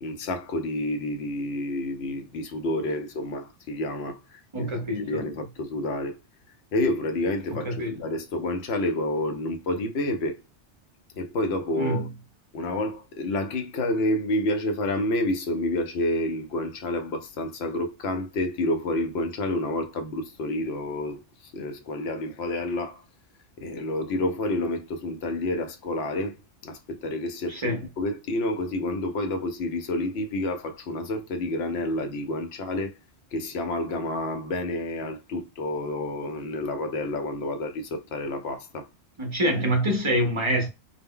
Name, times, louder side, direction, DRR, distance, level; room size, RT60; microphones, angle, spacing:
voice 1, 0.0-4.7 5.0-6.2 6.7-10.4 11.2-12.1 12.5-23.0 23.6-26.4 26.6-32.9 33.3-38.9, left 1 dB, 70° left, 0.8 m, -29 dB
voice 2, 4.5-5.3 7.5-7.9 11.8-12.1 27.5-27.9 39.2-40.7, equal, 35° right, 0.5 m, -26 dB
2.1 x 2.1 x 3.5 m
omnidirectional pair, 1.2 m